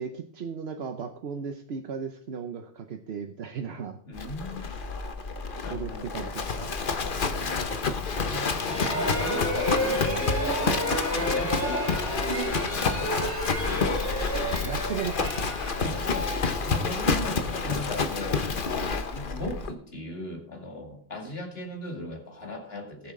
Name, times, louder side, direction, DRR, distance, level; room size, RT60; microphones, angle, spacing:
voice 1, 0.0-4.0 5.7-6.7 8.8-8.9 14.6-15.5, right 6 dB, 75° right, 6 dB, 1.1 m, -36 dB
voice 2, 4.1-4.7 5.6-6.3 8.3-10.7 11.1-13.4 15.8-18.4 19.1-23.1, left 1 dB, 70° left, 2 dB, 2.7 m, -38 dB
Livestock farm animals working animals, 4.2-19.7, left 4 dB, 55° left, 1.2 m, -29 dB
sound 1, 8.5-17.2, equal, 15° left, 2.7 m, -31 dB
19.0 x 7.2 x 3.8 m, 0.67 s
omnidirectional pair, 1.1 m